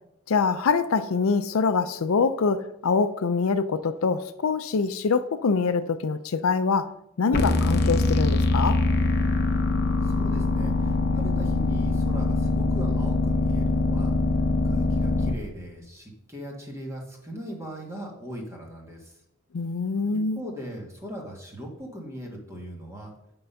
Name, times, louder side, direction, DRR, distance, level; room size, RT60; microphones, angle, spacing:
voice 1, 0.3-6.9 7.2-8.8 19.5-20.4, left 5 dB, 85° left, 0.5 m, -24 dB
sound 1, 7.3-15.3, left 2 dB, 50° left, 0.7 m, -23 dB
voice 2, 10.0-14.1 14.6-19.1 20.3-23.1, equal, 15° right, 1.6 m, -39 dB
9.1 x 3.8 x 5.6 m
head